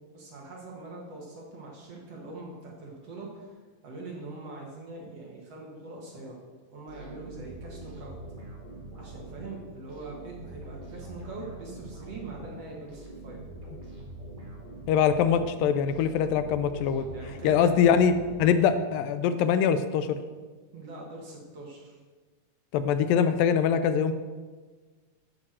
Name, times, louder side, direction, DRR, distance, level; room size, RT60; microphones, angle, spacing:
voice 1, 0.1-3.5 3.8-6.4 6.7-8.1 9.0-13.4 17.1-17.7 20.7-22.0, right 3 dB, 55° right, -2 dB, 2.2 m, -42 dB
sound 1, 6.9-19.1, right 2 dB, 15° right, 2.0 m, -44 dB
voice 2, 14.9-17.1 17.4-18.1 18.4-20.2 22.7-24.1, left 7 dB, 80° left, 10 dB, 2.2 m, -23 dB
9.2 x 5.9 x 7.4 m, 1.4 s
omnidirectional pair, 4.1 m